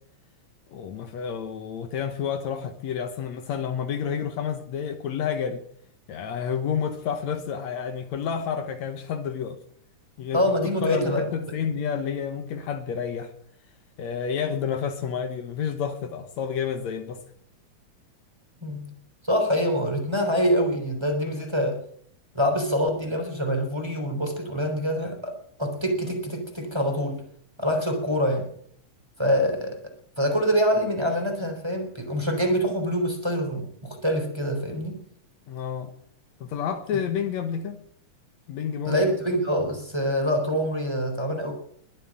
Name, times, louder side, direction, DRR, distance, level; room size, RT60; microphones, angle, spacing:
voice 1, 0.7-5.6 6.1-9.6 10.2-10.4 10.8-13.3 14.0-17.2 35.5-35.9 36.4-37.8 38.5-39.0, left 7 dB, 70° left, 2.4 m, -30 dB
voice 2, 10.3-11.3 18.6-18.9 19.2-21.8 22.3-25.3 25.6-27.2 27.6-28.5 29.2-35.0 38.8-41.5, equal, 10° right, 3.6 m, -25 dB
21.5 x 7.8 x 7.4 m
omnidirectional pair, 3.4 m